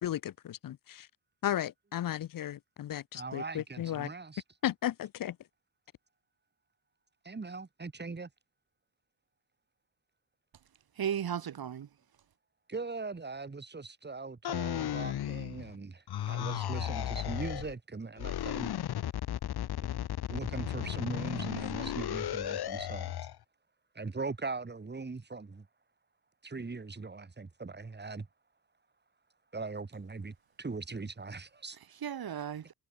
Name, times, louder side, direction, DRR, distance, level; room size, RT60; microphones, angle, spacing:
voice 1, 0.0-1.1 1.4-4.1 4.6-5.4, left 12 dB, 65° left, 0.6 m, -35 dB
voice 2, 3.1-4.4 7.2-8.3 12.7-18.7 20.3-23.1 23.9-25.7 26.4-28.3 29.5-31.8, right 4 dB, 25° right, 3.1 m, -40 dB
voice 3, 10.9-11.9 31.7-32.7, right 9 dB, 75° right, 3.9 m, -36 dB
sound 1, 14.4-15.8 16.1-17.7 18.2-23.4, left 11 dB, 85° left, 1.7 m, -35 dB
cardioid pair, 85°, 37 cm